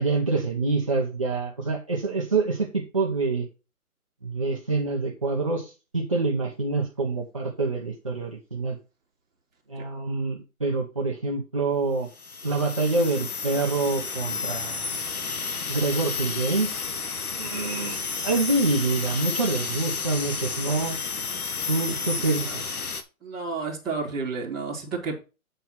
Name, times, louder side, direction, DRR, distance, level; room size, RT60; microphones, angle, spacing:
voice 1, 0.0-3.5 4.2-8.8 9.7-12.1 12.4-15.0 15.7-16.7 17.4-18.0 18.2-21.0 21.7-22.6, right 3 dB, 25° right, -3 dB, 0.7 m, -26 dB
sound 1, 12.1-23.0, left 5 dB, 80° left, 1.8 m, -31 dB
voice 2, 22.2-22.6 23.2-25.2, right 4 dB, ahead, -13 dB, 1.4 m, -31 dB
9.1 x 4.5 x 5.4 m, 0.30 s
hypercardioid pair, 180°, 44 cm